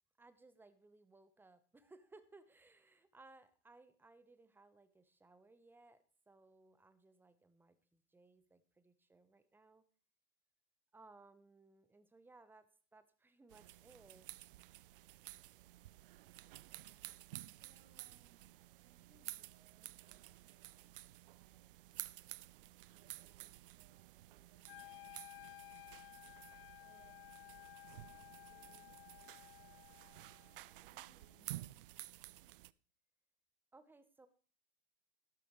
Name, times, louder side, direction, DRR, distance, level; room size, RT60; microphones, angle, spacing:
voice 1, 0.2-9.8 10.9-14.3 33.7-34.3, right 3 dB, 5° right, 12 dB, 0.9 m, -63 dB
sound 1, 13.5-32.7, right 16 dB, 50° right, 0.5 m, -53 dB
voice 2, 17.2-18.5 18.8-31.9, right 4 dB, 30° right, -2 dB, 4.9 m, -74 dB
Wind instrument woodwind instrument, 24.7-30.7, left 20 dB, 50° left, 0.6 m, -56 dB
13.0 x 12.0 x 3.2 m, 0.41 s
figure-of-eight pair, 100°, 35 cm